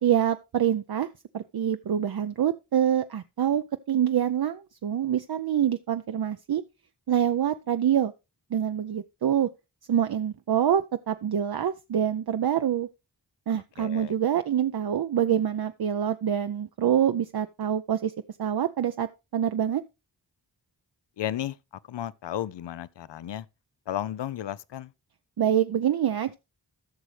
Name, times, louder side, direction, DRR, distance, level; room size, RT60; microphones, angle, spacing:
voice 1, 0.0-1.1 1.3-6.6 7.1-8.1 8.5-9.5 9.9-12.9 13.5-18.1 18.4-19.8 25.4-26.3, right 9 dB, 60° right, 0.6 m, -26 dB
voice 2, 13.8-14.1 21.2-21.6 21.9-23.5 23.9-24.9, left 11 dB, 85° left, 0.5 m, -33 dB
14.5 x 6.2 x 3.3 m
wide cardioid pair, 55°, 42 cm